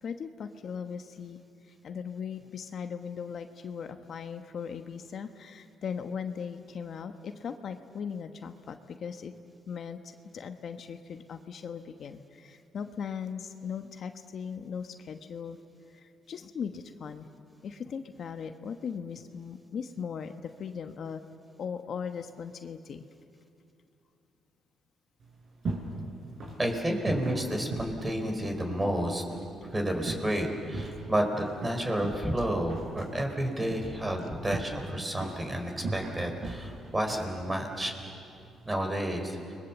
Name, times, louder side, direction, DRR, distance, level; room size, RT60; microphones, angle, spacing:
voice 1, 0.0-1.4 1.7-15.6 15.9-17.3 17.6-21.3 21.6-23.1, left 6 dB, 60° left, 7 dB, 1.1 m, -39 dB
sound 1, 25.2-38.7, right 2 dB, 55° right, 6.4 m, -40 dB
voice 2, 26.6-29.2 29.6-37.9 38.6-39.4, right 1 dB, 20° right, 4 dB, 4.2 m, -30 dB
30.0 x 21.5 x 7.3 m, 2.6 s
cardioid pair, 90°, 0 cm